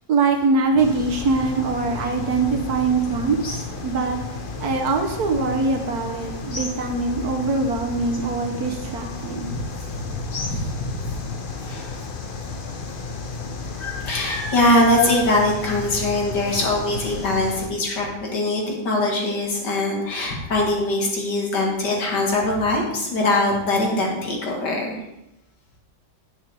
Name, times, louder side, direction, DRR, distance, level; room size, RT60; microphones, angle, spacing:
voice 1, 0.1-4.2 4.6-9.5, right 4 dB, 60° right, 4 dB, 1.4 m, -23 dB
sound 1, 0.8-17.7, left 4 dB, 50° left, 0.6 m, -33 dB
voice 2, 10.1-11.1 11.6-12.0 13.8-25.0, left 2 dB, 65° left, -1 dB, 2.5 m, -22 dB
9.4 x 8.3 x 3.4 m, 0.90 s
omnidirectional pair, 2.0 m